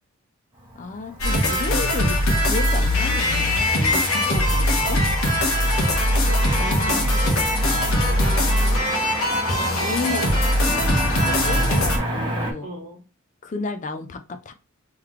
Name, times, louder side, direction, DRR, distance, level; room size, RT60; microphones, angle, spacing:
Motor vehicle (road), 0.6-12.5, right 1 dB, 20° right, 1.0 m, -32 dB
voice 1, 0.7-5.0 6.2-6.3 6.6-7.2 9.5-12.7 13.4-14.5, left 4 dB, 35° left, 8 dB, 0.4 m, -32 dB
sound 1, 1.2-12.0, left 1 dB, 65° left, 1.1 m, -21 dB
voice 2, 5.5-5.9 6.2-7.2 7.5-8.8 12.6-13.0, right 1 dB, 70° right, 0 dB, 1.0 m, -40 dB
3.8 x 3.1 x 3.1 m, 0.31 s
head